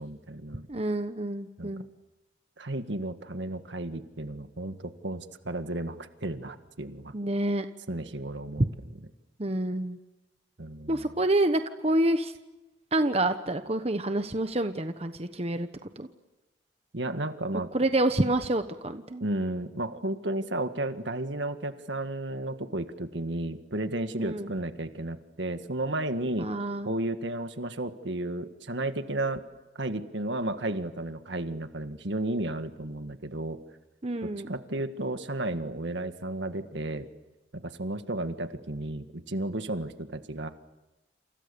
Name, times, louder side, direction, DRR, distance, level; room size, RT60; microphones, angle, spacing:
voice 1, 0.0-0.7 1.6-1.7 2.6-7.1 7.9-8.7 10.6-11.1 16.9-17.7 19.2-26.5 26.8-29.4 29.8-33.6 34.2-37.1 37.5-40.5, right 1 dB, 75° right, 8 dB, 1.7 m, -33 dB
voice 2, 0.7-1.8 7.1-7.6 9.4-10.0 10.9-12.3 12.9-15.7 16.0-16.1 17.7-19.2 24.2-24.5 26.4-26.9 34.0-34.5, right 1 dB, 35° right, 8 dB, 1.1 m, -28 dB
28.5 x 28.5 x 7.0 m, 1.0 s
head